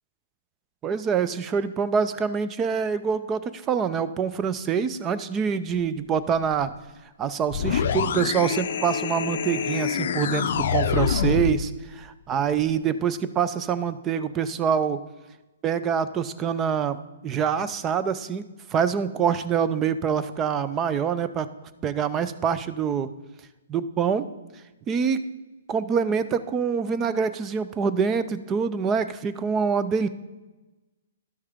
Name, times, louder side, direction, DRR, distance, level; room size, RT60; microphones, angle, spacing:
voice 1, 0.8-6.7 7.2-15.0 15.6-17.0 17.2-18.4 18.7-21.5 21.8-23.1 23.7-24.3 24.9-25.2 25.7-30.1, right 7 dB, 20° right, 13 dB, 0.5 m, -25 dB
sound 1, 7.5-11.7, left 7 dB, 60° left, 0.5 m, -26 dB
11.5 x 6.4 x 3.6 m, 1.1 s
hypercardioid pair, 135°, 0 cm